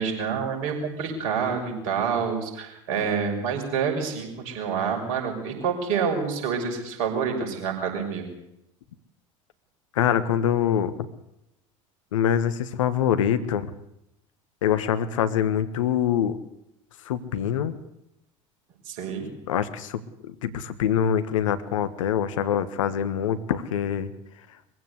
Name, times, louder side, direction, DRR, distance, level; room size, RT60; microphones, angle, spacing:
voice 1, 0.0-8.2 18.8-19.3, right 6 dB, 60° right, 3 dB, 6.0 m, -27 dB
voice 2, 9.9-11.1 12.1-13.7 14.6-16.4 17.0-17.8 19.5-20.0 20.3-24.1, left 9 dB, 70° left, 12 dB, 1.6 m, -24 dB
22.5 x 15.5 x 8.2 m, 0.85 s
figure-of-eight pair, 70°, 17 cm